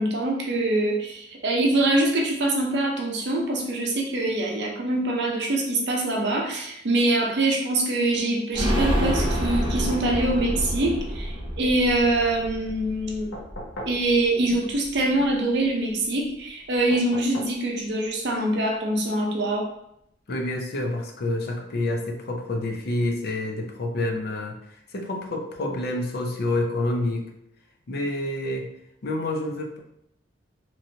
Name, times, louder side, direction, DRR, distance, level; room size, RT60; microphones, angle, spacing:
voice 1, 0.0-13.3 13.9-19.7, right 2 dB, 60° right, 0 dB, 0.7 m, -24 dB
sound 1, 8.5-14.1 14.5-14.6 14.9-15.0, equal, 25° right, 0.9 m, -28 dB
sound 2, 13.3-14.0 16.9-17.6 19.2-19.3, equal, 85° left, 0.8 m, -38 dB
voice 2, 20.3-24.6 24.9-27.3 27.9-28.7 29.0-29.8, left 2 dB, 55° left, 2 dB, 0.5 m, -28 dB
3.0 x 2.7 x 2.6 m, 0.76 s
head